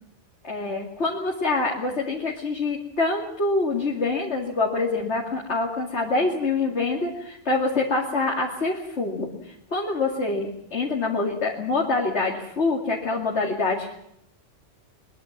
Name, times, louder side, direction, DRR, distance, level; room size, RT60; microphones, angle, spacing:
voice 1, 0.4-13.9, left 3 dB, 65° left, -1 dB, 2.8 m, -25 dB
23.0 x 21.5 x 7.4 m, 0.76 s
omnidirectional pair, 1.2 m